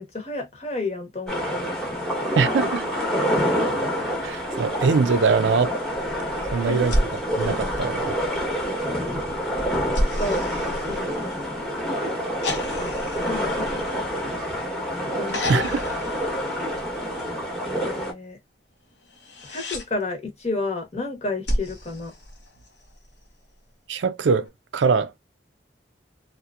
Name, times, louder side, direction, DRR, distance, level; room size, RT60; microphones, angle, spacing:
voice 1, 0.0-1.8 3.0-3.6 6.5-6.8 9.9-10.4 10.9-11.1 12.8-12.9 13.2-13.7 15.1-15.6 17.8-18.4 19.5-22.1, left 2 dB, 35° left, 1.0 m, -31 dB
sound 1, 1.3-18.1, equal, ahead, 0.9 m, -27 dB
voice 2, 2.4-2.9 4.2-5.7 6.5-7.0 7.4-8.1 15.5-15.8 23.9-25.1, right 5 dB, 85° right, 0.4 m, -22 dB
sound 2, 6.8-8.4 9.9-11.6 12.4-14.7 15.3-17.1 19.1-19.9 21.5-22.9 24.5-24.6, equal, 75° left, 1.0 m, -30 dB
2.8 x 2.5 x 2.3 m
head